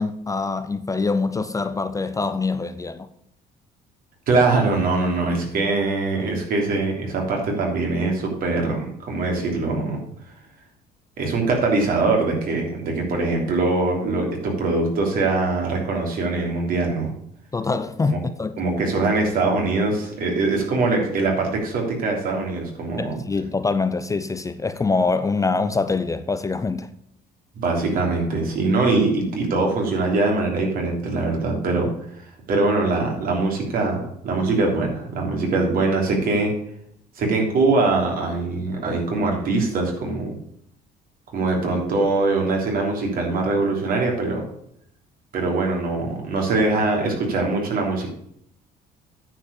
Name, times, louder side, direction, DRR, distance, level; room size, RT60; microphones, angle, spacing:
voice 1, 0.0-3.1 17.5-18.6 23.0-26.9, left 4 dB, 20° left, 0.5 m, -24 dB
voice 2, 4.3-10.0 11.2-17.1 18.1-18.2 18.6-23.2 27.6-31.9 32.2-36.5 37.2-40.3 41.3-44.4 45.3-48.1, right 3 dB, 60° right, 3.2 m, -22 dB
9.6 x 4.8 x 7.0 m
cardioid pair, 110°, 17 cm